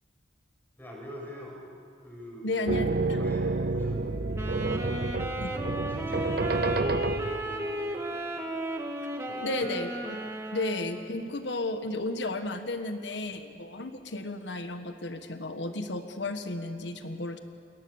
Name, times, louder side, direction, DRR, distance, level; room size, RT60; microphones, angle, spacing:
voice 1, 0.8-1.6 2.0-2.5 2.7-4.7 5.4-8.6 9.3-9.7, equal, 10° left, -2 dB, 6.8 m, -45 dB
voice 2, 2.4-3.2 5.4-5.5 9.4-10.2 10.5-17.4, left 2 dB, 80° left, 8 dB, 1.5 m, -33 dB
sound 1, 2.7-7.7, right 3 dB, 60° right, 0.7 m, -29 dB
sound 2, 2.8-8.2, equal, 80° right, 4.5 m, -49 dB
Wind instrument woodwind instrument, 4.3-11.3, right 1 dB, 15° right, 2.0 m, -35 dB
29.0 x 21.5 x 7.2 m, 2.4 s
head